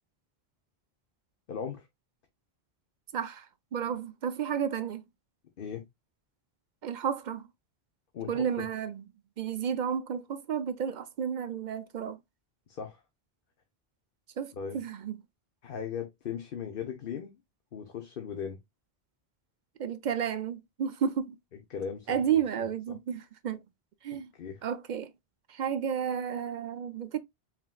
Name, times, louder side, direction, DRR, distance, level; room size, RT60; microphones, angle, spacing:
voice 1, 1.5-1.9 5.6-5.8 8.1-8.4 12.7-13.0 14.5-14.8 15.6-17.4 17.7-18.6 21.7-23.0 24.4-24.6, left 7 dB, 60° left, 0.9 m, -38 dB
voice 2, 3.1-3.5 3.7-5.0 6.8-7.5 8.3-9.0 9.4-12.2 14.4-15.2 19.8-21.3 22.1-23.6 24.0-24.3 24.6-25.1 25.5-27.2, right 8 dB, 55° right, 0.6 m, -32 dB
4.9 x 3.6 x 2.3 m
omnidirectional pair, 1.1 m